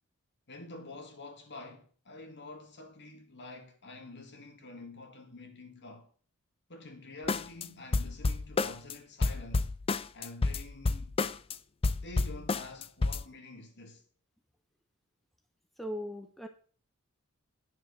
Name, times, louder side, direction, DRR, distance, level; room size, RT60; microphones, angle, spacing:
voice 1, 0.5-6.1 6.7-9.7 10.1-11.2 12.0-14.0, left 2 dB, 55° left, 2.1 m, -48 dB
sound 1, 7.3-7.7 7.9-8.9 9.2-11.5 11.8-13.2, left 3 dB, 25° left, 0.4 m, -29 dB
voice 2, 15.8-16.5, equal, ahead, 0.8 m, -38 dB
9.5 x 6.3 x 6.5 m
head